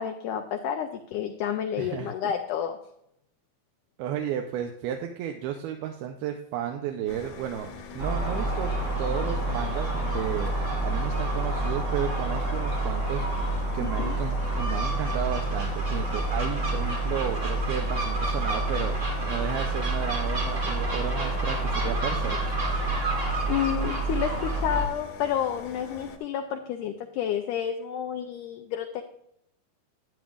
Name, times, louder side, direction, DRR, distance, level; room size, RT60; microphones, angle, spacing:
voice 1, 0.0-2.8 13.8-14.2 23.5-29.0, left 9 dB, 85° left, 5 dB, 1.8 m, -30 dB
voice 2, 1.8-2.3 4.0-8.7 9.0-13.3 13.7-22.4, right 9 dB, 85° right, 4 dB, 2.6 m, -33 dB
sound 1, 7.1-26.2, left 4 dB, 65° left, 2.1 m, -45 dB
Gull seagull, 8.0-24.9, right 2 dB, 55° right, 0.8 m, -28 dB
11.0 x 9.2 x 2.4 m, 0.75 s
omnidirectional pair, 4.3 m